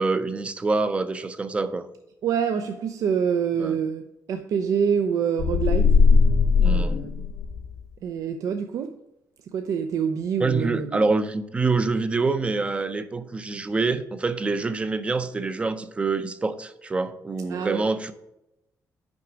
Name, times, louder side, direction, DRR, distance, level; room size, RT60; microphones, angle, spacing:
voice 1, 0.0-1.9 3.6-3.8 6.6-7.0 10.4-18.1, right 3 dB, 20° right, 0.5 m, -26 dB
voice 2, 2.2-6.0 6.6-7.3 8.0-9.0 9.5-11.0 17.5-17.8, right 7 dB, 65° right, 0.5 m, -26 dB
sound 1, 5.4-7.8, left 5 dB, 55° left, 0.6 m, -19 dB
5.9 x 5.0 x 6.1 m
cardioid pair, 145°, 6 cm